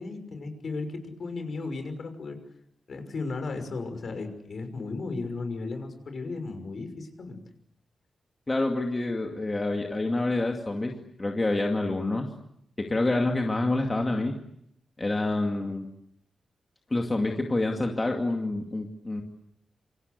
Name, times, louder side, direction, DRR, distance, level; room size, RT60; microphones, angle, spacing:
voice 1, 0.0-2.4 2.9-7.4, left 3 dB, 50° left, 7 dB, 6.0 m, -35 dB
voice 2, 8.5-10.9 11.2-12.3 12.8-14.3 15.0-15.9 16.9-19.2, left 2 dB, 20° left, 2 dB, 2.3 m, -27 dB
27.5 x 27.0 x 8.2 m, 0.75 s
wide cardioid pair, 135°, 0 cm